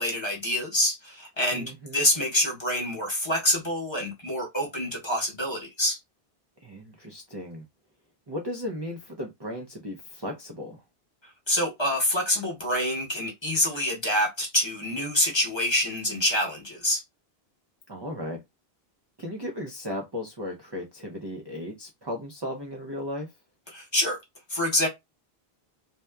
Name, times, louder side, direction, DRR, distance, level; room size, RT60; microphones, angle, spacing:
voice 1, 0.0-6.0 11.5-17.0 23.7-24.2 24.5-24.9, left 1 dB, 30° left, 0.9 m, -26 dB
voice 2, 1.5-2.1 6.6-7.6 8.3-10.8 17.9-18.4 19.2-23.3, left 1 dB, 35° right, 0.4 m, -36 dB
2.7 x 2.2 x 2.2 m
omnidirectional pair, 1.0 m